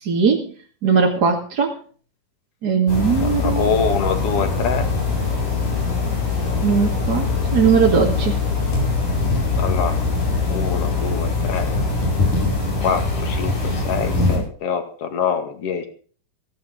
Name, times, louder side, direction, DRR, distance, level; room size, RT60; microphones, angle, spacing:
voice 1, 0.0-0.5 0.8-1.7 2.6-3.7 6.6-8.4, right 6 dB, 35° right, -1 dB, 2.4 m, -19 dB
sound 1, 2.9-14.4, left 3 dB, 75° left, 7.1 m, -22 dB
voice 2, 3.2-4.9 9.6-10.0 10.5-11.8 12.8-13.5 13.8-15.9, left 6 dB, 50° left, 8 dB, 2.9 m, -24 dB
16.5 x 16.0 x 3.8 m, 0.42 s
omnidirectional pair, 3.7 m